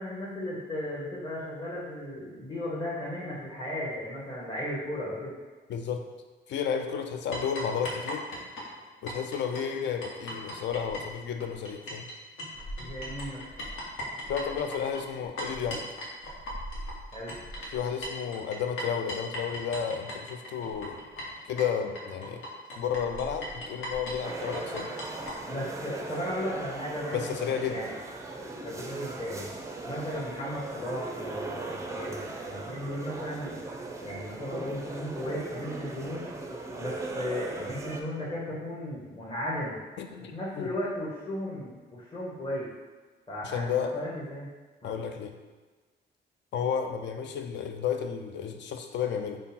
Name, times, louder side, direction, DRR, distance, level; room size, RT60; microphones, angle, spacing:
voice 1, 0.0-5.3 12.8-13.4 17.1-17.3 25.5-27.3 27.7-27.9 28.6-29.5 29.8-32.2 32.4-33.6 34.0-36.3 36.8-39.8 40.3-42.7 43.3-44.5 44.8-44.9, left 1 dB, 25° left, -8 dB, 1.0 m, -35 dB
voice 2, 5.7-6.1 6.5-8.3 9.0-12.1 14.3-15.8 17.7-21.0 21.4-22.4 22.8-24.9 27.1-27.8 40.0-40.7 43.4-43.9 44.8-45.3 46.5-49.4, left 7 dB, 65° left, 6 dB, 0.4 m, -32 dB
sound 1, 7.3-12.1 12.4-25.4, equal, 85° left, 0.9 m, -38 dB
sound 2, 24.2-38.0, right 3 dB, 15° right, 0.4 m, -38 dB
3.8 x 2.1 x 4.1 m, 1.3 s
cardioid pair, 90°, 20 cm